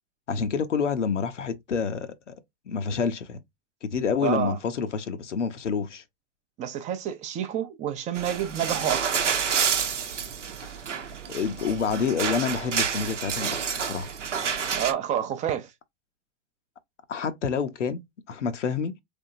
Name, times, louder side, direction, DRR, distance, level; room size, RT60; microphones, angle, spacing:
voice 1, 0.3-2.3 2.7-3.4 3.8-6.0 10.6-14.1 17.1-18.0 18.3-18.9, left 6 dB, 80° left, 0.8 m, -28 dB
voice 2, 4.2-4.6 6.6-9.1 14.7-15.7, right 9 dB, 20° right, 0.4 m, -29 dB
sound 1, 8.2-14.9, right 7 dB, 85° right, 0.7 m, -29 dB
3.5 x 3.4 x 2.5 m
figure-of-eight pair, 95°, 35 cm